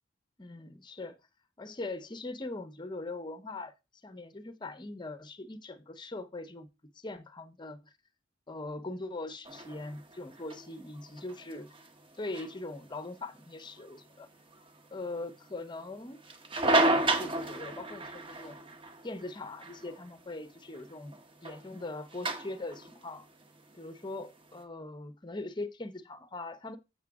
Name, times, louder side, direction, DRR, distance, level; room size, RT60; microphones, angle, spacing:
voice 1, 0.4-1.2 1.6-3.7 4.0-6.7 7.0-7.8 8.5-11.7 12.2-14.3 14.9-16.2 16.7-18.6 19.0-23.3 23.8-26.8, left 2 dB, 25° left, 0.7 m, -41 dB
sound 1, 9.4-24.6, right 2 dB, 25° right, 1.1 m, -34 dB
7.2 x 6.8 x 3.5 m
head